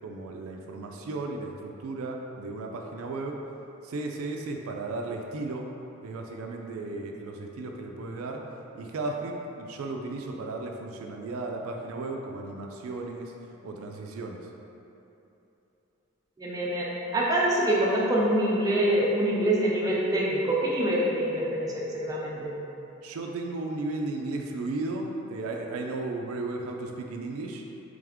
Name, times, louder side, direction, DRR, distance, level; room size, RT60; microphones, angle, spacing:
voice 1, 0.0-3.4 3.8-5.7 6.0-8.4 8.7-13.3 13.6-14.5 23.0-27.6, right 2 dB, 75° right, 2 dB, 0.4 m, -35 dB
voice 2, 16.4-22.5, right 1 dB, 15° right, -5 dB, 0.4 m, -25 dB
3.4 x 3.4 x 3.5 m, 3.0 s
head